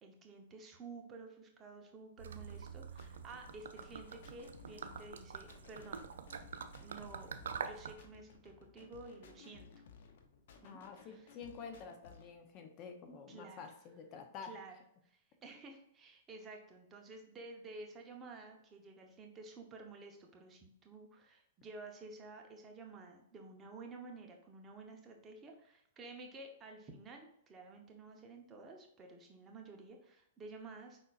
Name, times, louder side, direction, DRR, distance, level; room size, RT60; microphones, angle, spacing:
voice 1, 0.0-6.1 6.8-9.7 10.6-11.4 13.3-13.7 14.4-14.8 15.0-31.0, right 3 dB, 20° right, 2 dB, 0.9 m, -52 dB
Gurgling / Liquid, 2.2-8.0, right 6 dB, 85° right, 0.5 m, -46 dB
sound 1, 2.4-12.4, left 6 dB, 65° left, 0.8 m, -59 dB
voice 2, 10.5-14.6, left 6 dB, 35° left, 6 dB, 0.8 m, -49 dB
5.3 x 4.1 x 2.5 m, 0.72 s
hypercardioid pair, 135°, 0 cm